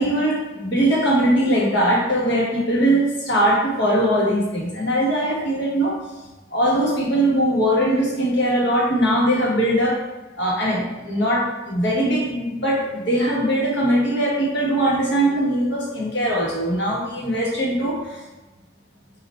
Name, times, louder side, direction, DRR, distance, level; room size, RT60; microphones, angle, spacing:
voice 1, 0.0-5.9 6.5-10.0 10.4-18.2, right 1 dB, 75° left, -4 dB, 1.2 m, -21 dB
4.2 x 2.4 x 4.1 m, 1.1 s
head